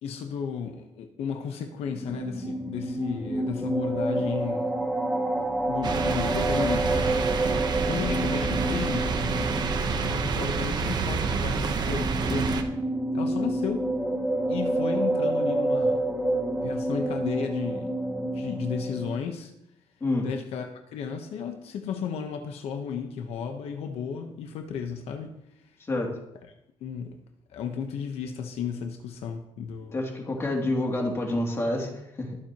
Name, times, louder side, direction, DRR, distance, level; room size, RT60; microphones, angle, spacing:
voice 1, 0.0-4.7 5.7-7.2 7.9-9.1 10.0-12.5 13.1-13.9 14.5-16.0 16.6-18.0 18.3-19.5 20.2-25.3 25.6-25.8 26.8-27.2 27.5-30.0, left 7 dB, 80° left, 5 dB, 1.1 m, -34 dB
sound 1, 1.8-19.2, right 1 dB, 5° right, 1.5 m, -29 dB
sound 2, 5.8-12.6, right 5 dB, 45° right, 1.0 m, -28 dB
voice 2, 29.9-32.4, left 2 dB, 25° left, -1 dB, 2.6 m, -28 dB
21.0 x 7.7 x 3.0 m, 0.82 s
cardioid pair, 145°, 10 cm